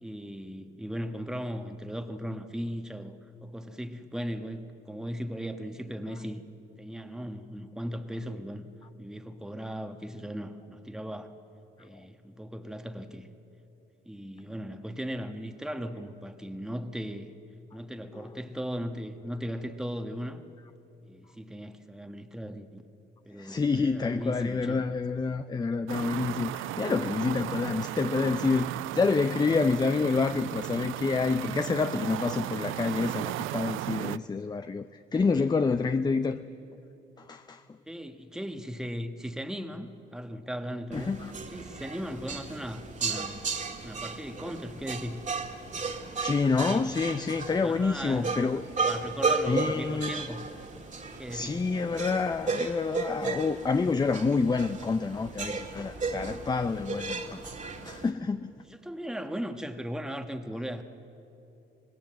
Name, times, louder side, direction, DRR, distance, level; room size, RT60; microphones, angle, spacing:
voice 1, 0.0-3.2 3.4-6.4 6.8-8.6 9.0-11.3 11.8-13.3 14.1-17.3 17.7-20.4 21.0-22.8 23.2-24.9 37.9-41.1 41.5-43.4 43.8-45.2 46.6-46.9 47.6-48.4 48.9-50.4 51.2-51.6 58.7-60.8, equal, 5° right, 1.2 m, -37 dB
voice 2, 23.4-36.4 37.2-37.6 40.9-41.3 46.2-48.7 49.5-50.1 51.3-57.5 57.8-58.5, left 4 dB, 20° left, 0.5 m, -28 dB
sound 1, 25.9-34.2, right 15 dB, 85° right, 0.4 m, -35 dB
sound 2, 40.9-58.1, right 4 dB, 40° right, 2.0 m, -34 dB
25.0 x 19.0 x 7.6 m
cardioid pair, 90°, 20 cm